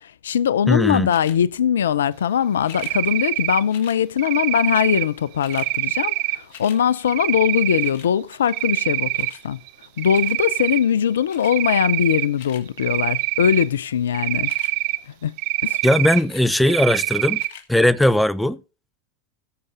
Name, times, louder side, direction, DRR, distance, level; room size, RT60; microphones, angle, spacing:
voice 1, 0.0-9.6 10.0-14.5 15.2-15.3 15.6-15.8, left 9 dB, 80° left, 0.5 m, -21 dB
voice 2, 0.7-1.1 15.8-17.4 17.7-18.6, left 1 dB, 5° left, 0.7 m, -18 dB
sound 1, 1.1-1.4 2.6-3.0 3.7-4.0 4.9-5.0 5.2-5.7 6.1-6.8 7.8-8.1 9.2-9.4 10.1-10.4 11.3-11.5 12.1-12.6 14.3-14.7 16.1-16.5 17.3-17.7 18.3-18.4, left 9 dB, 65° left, 1.5 m, -43 dB
Cricket, 2.7-3.6 4.2-5.0 5.5-6.4 7.1-7.9 8.3-9.3 9.7-10.8 11.4-12.3 12.8-13.6 14.1-15.0 15.4-16.2 16.7-17.5, right 19 dB, 60° right, 0.9 m, -24 dB
16.5 x 6.7 x 3.9 m
hypercardioid pair, 90°, 0 cm